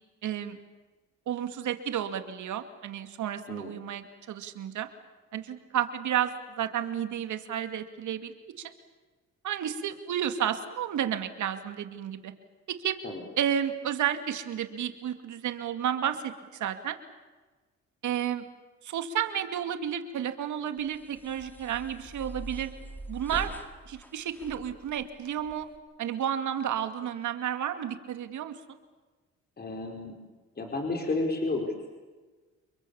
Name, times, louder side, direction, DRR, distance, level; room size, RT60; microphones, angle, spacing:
voice 1, 0.2-0.6 1.3-4.9 5.3-8.7 9.4-12.3 12.7-13.0 13.4-16.3 16.6-17.0 18.0-18.4 18.8-22.7 23.1-23.5 23.9-25.7 26.0-28.5, right 9 dB, 75° right, 8 dB, 2.4 m, -31 dB
sound 1, 20.8-25.8, right 1 dB, 5° left, 2.6 m, -43 dB
voice 2, 29.6-30.2 30.6-31.9, left 2 dB, 30° left, 2 dB, 4.9 m, -31 dB
29.5 x 23.0 x 7.2 m, 1.3 s
cardioid pair, 90°, 30 cm